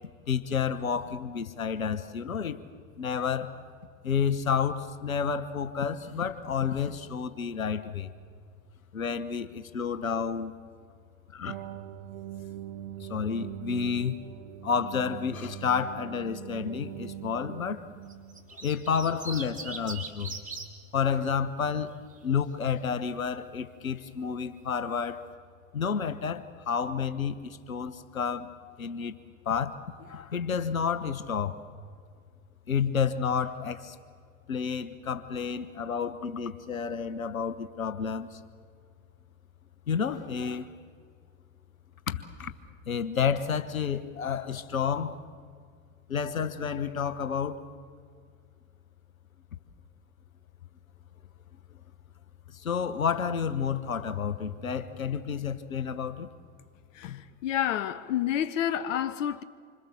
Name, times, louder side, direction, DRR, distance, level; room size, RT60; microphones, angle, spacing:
voice 1, 0.3-2.6 3.0-3.5 4.0-8.1 8.9-10.5 11.3-11.6 13.0-14.1 14.6-17.9 18.6-20.4 20.9-22.0 22.2-25.2 25.7-28.5 28.8-29.1 29.4-31.6 32.7-34.0 34.5-38.4 39.9-40.7 42.1-42.5 42.9-45.2 46.1-47.6 52.5-56.3, left 6 dB, 90° left, 1.2 m, -30 dB
sound 1, 11.4-18.5, right 12 dB, 60° right, 1.0 m, -42 dB
sound 2, 18.1-20.7 21.9-22.4, right 4 dB, 20° right, 3.1 m, -40 dB
voice 2, 57.0-59.4, left 10 dB, 70° left, 1.1 m, -29 dB
26.5 x 26.0 x 7.1 m
hypercardioid pair, 90°, 40 cm